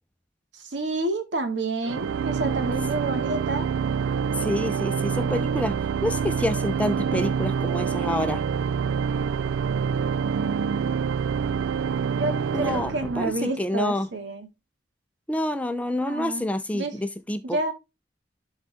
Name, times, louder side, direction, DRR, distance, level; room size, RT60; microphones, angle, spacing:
voice 1, 0.6-3.7 10.0-10.9 12.1-14.5 16.0-16.4 16.7-17.0 17.4-17.7, right 2 dB, 70° right, 2.2 m, -29 dB
Organ, 1.8-13.7, right 6 dB, 85° right, 0.3 m, -26 dB
voice 2, 4.3-5.7 6.0-8.4 12.5-14.1 15.3-17.6, left 1 dB, 5° left, 0.6 m, -28 dB
12.0 x 4.0 x 3.5 m
head